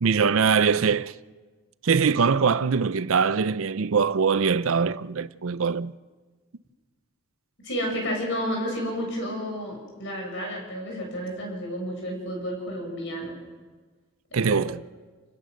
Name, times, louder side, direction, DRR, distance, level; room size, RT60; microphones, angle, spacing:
voice 1, 0.0-1.1 1.8-5.9 14.3-14.8, right 5 dB, 65° right, 0.5 m, -22 dB
voice 2, 7.6-13.4 14.4-14.6, equal, 55° left, 7.3 m, -31 dB
30.0 x 16.0 x 6.5 m
head